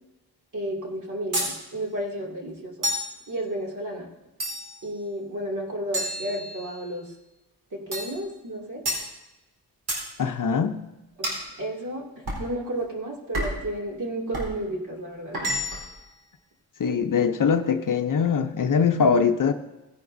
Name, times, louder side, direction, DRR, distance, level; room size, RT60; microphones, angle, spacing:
voice 1, 0.5-2.9 3.3-4.1 4.8-7.1 7.7-8.8 11.2-15.5, right 1 dB, 50° right, -1 dB, 2.6 m, -32 dB
sound 1, 1.3-1.6 2.8-3.2 4.4-4.8 5.9-6.8 7.9-8.2 8.8-9.1 9.9-10.1 11.2-11.5 12.3-12.5 13.3-13.7 14.3-14.5 15.3-15.9, equal, 70° right, 3.9 m, -29 dB
voice 2, 10.2-10.8 16.8-19.5, left 6 dB, 50° left, 7 dB, 0.7 m, -22 dB
17.5 x 11.0 x 2.7 m, 1.0 s
wide cardioid pair, 145°, 40 cm